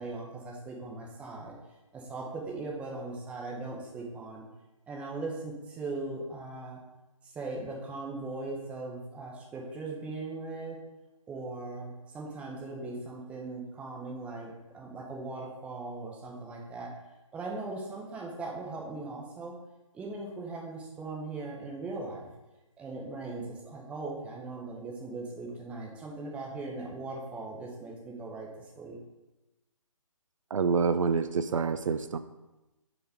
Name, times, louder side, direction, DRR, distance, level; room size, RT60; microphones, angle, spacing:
voice 1, 0.0-1.5 1.9-4.4 4.9-6.8 7.2-10.8 11.3-16.9 17.3-19.5 19.9-22.3 22.8-29.0, right 3 dB, 5° right, -2 dB, 0.7 m, -39 dB
voice 2, 30.5-32.2, right 5 dB, 65° right, 11 dB, 0.4 m, -27 dB
5.0 x 4.9 x 5.0 m, 1.0 s
figure-of-eight pair, 145°, 18 cm